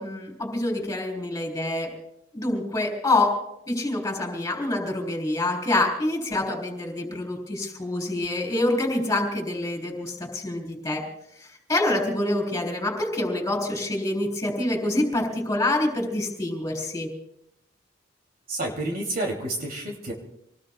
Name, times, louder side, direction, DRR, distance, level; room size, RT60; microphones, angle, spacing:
voice 1, 0.0-1.9 2.3-3.4 3.7-11.0 11.4-17.1, left 2 dB, 15° left, 1 dB, 3.8 m, -26 dB
voice 2, 18.5-20.1, right 1 dB, 50° right, 0 dB, 2.7 m, -29 dB
27.5 x 19.5 x 2.3 m, 0.76 s
head